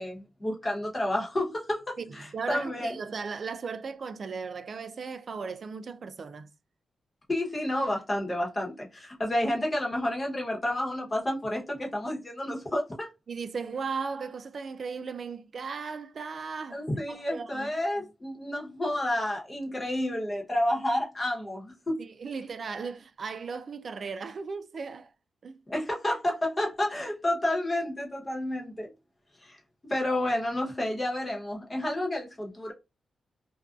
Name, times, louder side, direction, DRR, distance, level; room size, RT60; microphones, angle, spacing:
voice 1, 0.0-3.0 7.3-13.1 16.7-22.0 25.7-28.9 29.4-29.6 29.9-32.7, left 1 dB, 25° left, 1.0 m, -30 dB
voice 2, 2.0-6.5 13.3-17.7 22.0-25.1 25.4-25.6, right 5 dB, 50° right, 0.3 m, -37 dB
2.5 x 2.2 x 2.4 m
cardioid pair, 100°, 0 cm